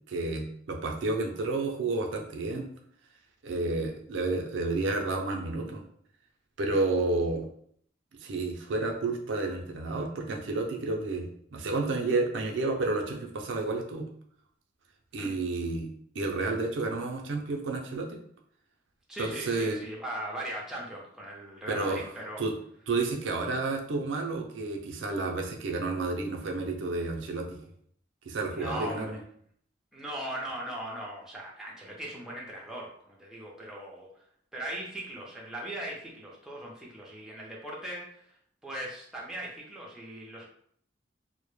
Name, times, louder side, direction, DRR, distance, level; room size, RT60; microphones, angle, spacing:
voice 1, 0.1-2.7 3.4-5.8 6.6-7.4 8.2-14.1 15.1-18.2 19.2-19.8 21.7-22.0 22.4-22.5 22.9-27.6 28.3-29.2, right 3 dB, 85° right, 2 dB, 0.4 m, -31 dB
voice 2, 19.1-22.4 28.5-29.2 29.9-34.2 34.5-38.4 38.6-40.5, right 1 dB, 5° right, -4 dB, 0.5 m, -39 dB
2.1 x 2.0 x 3.0 m, 0.64 s
head